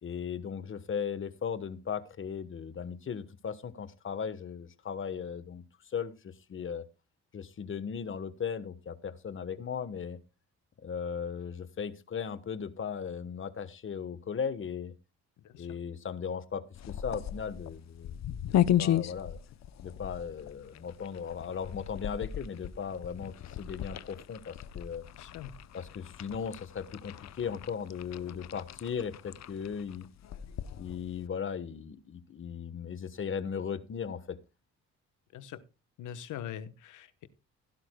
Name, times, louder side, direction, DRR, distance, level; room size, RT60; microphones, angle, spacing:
voice 1, 0.0-5.6 5.9-6.8 7.3-10.2 10.8-14.9 15.6-18.4 18.8-19.4 19.8-25.1 25.7-30.1 30.8-34.4, left 7 dB, 40° left, 13 dB, 1.2 m, -37 dB
sound 1, 16.7-31.3, left 11 dB, 60° left, 0.7 m, -35 dB
voice 2, 25.2-25.5 35.3-35.6 36.0-37.3, left 10 dB, 80° left, 13 dB, 1.1 m, -42 dB
16.0 x 11.5 x 2.2 m, 0.28 s
cardioid pair, 90°, 30 cm